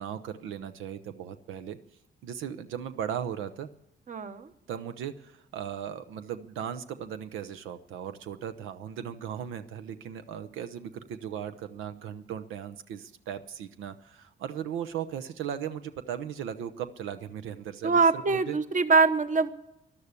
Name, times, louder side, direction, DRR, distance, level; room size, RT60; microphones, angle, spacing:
voice 1, 0.0-1.8 2.2-3.7 4.7-18.6, right 9 dB, 90° right, 10 dB, 0.8 m, -37 dB
voice 2, 4.1-4.5 17.8-19.5, right 4 dB, 40° right, 11 dB, 1.1 m, -23 dB
13.5 x 11.5 x 8.2 m, 0.86 s
cardioid pair, 90°, 20 cm